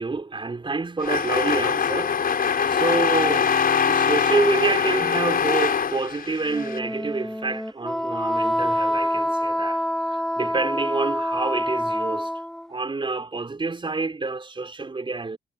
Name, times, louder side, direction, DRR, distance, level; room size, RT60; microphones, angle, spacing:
voice 1, 0.0-3.5 3.9-12.3 12.7-15.4, right 3 dB, 25° right, 4.7 m, -28 dB
sound 1, 1.0-6.8, left 6 dB, 50° left, 5.5 m, -23 dB
Wind instrument woodwind instrument, 6.4-12.7, equal, ahead, 4.7 m, -26 dB
cardioid pair, 90°, 20 cm